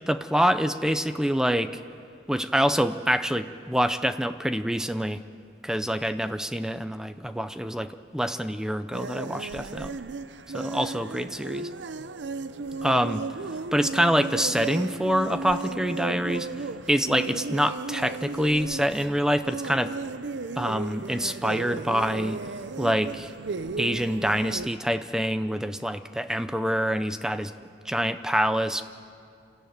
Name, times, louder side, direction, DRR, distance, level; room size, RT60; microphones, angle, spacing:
voice 1, 0.1-1.8 2.3-5.2 5.6-10.0 10.5-11.7 12.8-13.3 13.7-19.9 20.6-22.4 22.8-23.3 23.8-27.5 27.8-28.8, equal, 5° right, 11 dB, 0.5 m, -26 dB
sound 1, 8.9-24.7, right 4 dB, 85° right, 0.6 m, -35 dB
26.5 x 14.0 x 9.2 m, 2.5 s
head